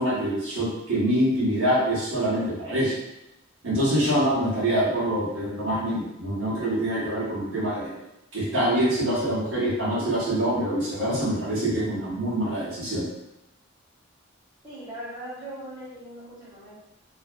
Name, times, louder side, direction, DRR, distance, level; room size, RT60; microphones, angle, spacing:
voice 1, 0.0-3.0 3.6-7.9 8.3-13.0, right 1 dB, 80° right, -8 dB, 1.0 m, -25 dB
voice 2, 14.6-16.7, right 1 dB, 20° right, -11 dB, 1.0 m, -39 dB
2.5 x 2.0 x 2.5 m, 0.91 s
head